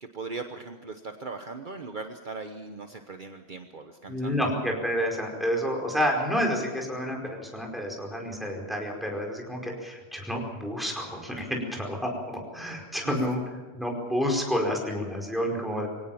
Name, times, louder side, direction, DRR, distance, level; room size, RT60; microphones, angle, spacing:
voice 1, 0.0-4.5 13.0-13.2, right 4 dB, 50° right, 6 dB, 1.3 m, -39 dB
voice 2, 4.1-13.4 13.7-15.9, equal, ahead, 0 dB, 4.8 m, -29 dB
24.0 x 17.5 x 7.2 m, 1.3 s
omnidirectional pair, 1.1 m